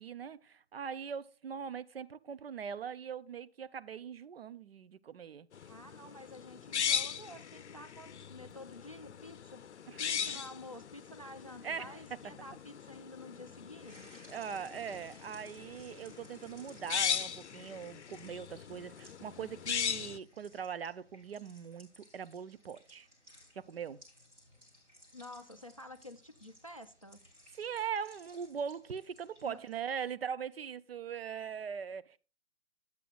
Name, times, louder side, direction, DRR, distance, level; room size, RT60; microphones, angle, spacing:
voice 1, 0.0-5.5 9.9-10.0 10.3-10.4 11.6-12.0 14.3-23.1 23.5-24.0 27.5-32.2, right 7 dB, 60° right, 0.5 m, -41 dB
sound 1, 5.5-20.2, left 8 dB, 75° left, 0.6 m, -39 dB
voice 2, 5.6-9.6 10.0-14.2 25.1-27.2 29.4-29.6, left 1 dB, 30° left, 0.4 m, -50 dB
sound 2, 13.8-29.9, left 1 dB, 10° right, 1.8 m, -61 dB
12.0 x 8.2 x 2.3 m
hypercardioid pair, 175°, 35 cm